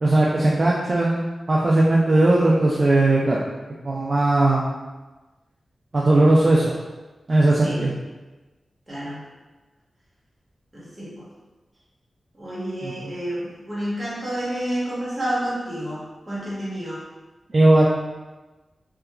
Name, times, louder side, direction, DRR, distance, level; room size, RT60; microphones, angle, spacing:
voice 1, 0.0-3.4 3.8-4.6 5.9-6.7 7.3-7.9 17.5-17.9, right 2 dB, 50° right, -5 dB, 0.3 m, -18 dB
voice 2, 8.9-9.2 10.7-11.3 12.3-17.0, right 1 dB, 25° right, -9 dB, 1.1 m, -30 dB
2.8 x 2.3 x 2.3 m, 1.2 s
wide cardioid pair, 80°, 0 cm